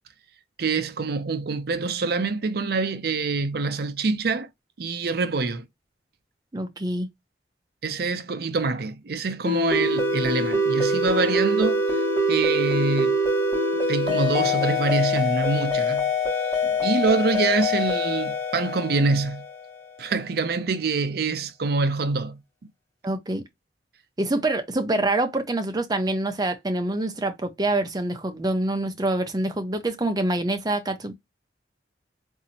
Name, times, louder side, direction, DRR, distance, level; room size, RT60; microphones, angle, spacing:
voice 1, 0.6-4.5 4.8-5.6 7.8-11.8 12.3-13.1 13.9-16.1 16.6-19.4 20.0-22.4, right 4 dB, 60° right, 0.5 m, -25 dB
voice 2, 6.5-7.1 23.0-23.4 24.2-31.1, right 2 dB, 20° right, 0.6 m, -26 dB
sound 1, 9.4-19.8, left 1 dB, 15° left, 2.6 m, -24 dB
4.0 x 2.7 x 2.7 m
head